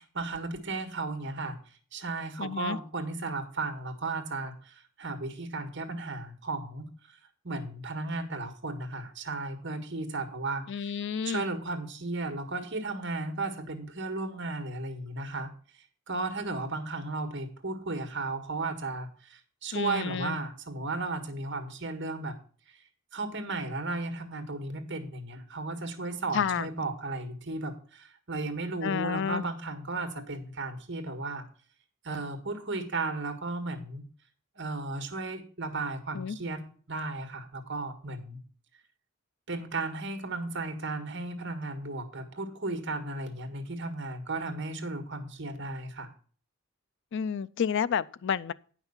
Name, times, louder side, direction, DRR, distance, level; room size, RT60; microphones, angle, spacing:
voice 1, 0.0-1.6 1.9-6.9 7.4-15.5 16.1-22.4 22.7-22.8 23.1-31.5 32.0-34.0 34.5-36.6 36.9-38.4 39.5-46.1, right 3 dB, 60° right, 1.7 m, -35 dB
voice 2, 2.4-2.8 10.7-11.4 19.7-20.4 26.3-26.7 28.8-29.4 36.1-36.4 47.1-48.5, left 7 dB, 60° left, 0.4 m, -30 dB
9.8 x 5.9 x 5.6 m
head